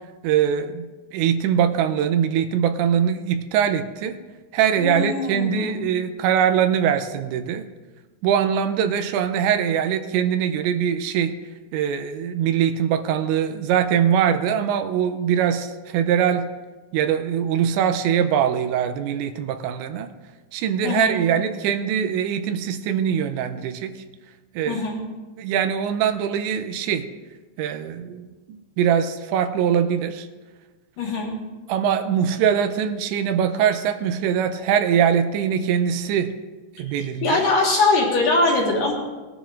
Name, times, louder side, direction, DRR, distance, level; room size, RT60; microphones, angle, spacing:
voice 1, 0.2-0.8 1.1-4.2 4.5-7.7 8.2-11.3 11.7-16.5 16.9-20.1 20.5-23.9 24.5-24.8 25.4-27.1 27.6-30.3 31.7-36.3 36.8-37.4, right 8 dB, 85° right, 8 dB, 2.9 m, -22 dB
voice 2, 4.8-5.9 20.8-21.1 24.7-25.0 31.0-31.3 36.9-38.9, left 3 dB, 60° left, -2 dB, 2.5 m, -22 dB
19.5 x 10.0 x 2.5 m, 1.3 s
omnidirectional pair, 5.2 m